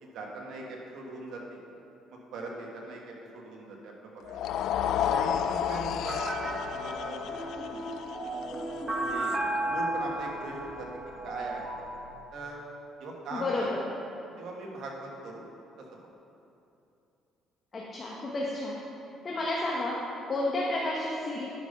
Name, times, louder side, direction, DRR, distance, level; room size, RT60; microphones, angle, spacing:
voice 1, 0.0-1.6 2.1-4.4 5.1-6.4 6.7-7.2 8.9-10.9 11.2-11.7 12.3-12.6 13.0-13.9 14.4-15.4 15.8-16.0, right 2 dB, 70° right, -1 dB, 1.7 m, -41 dB
sound 1, 4.3-10.5, left 9 dB, 70° left, 0.3 m, -32 dB
sound 2, 6.0-12.1, right 2 dB, 20° right, 1.2 m, -34 dB
voice 2, 13.3-13.8 17.7-18.8 19.2-21.4, left 2 dB, 35° left, -4 dB, 1.1 m, -31 dB
11.0 x 5.3 x 5.4 m, 2.8 s
cardioid pair, 105°, 0 cm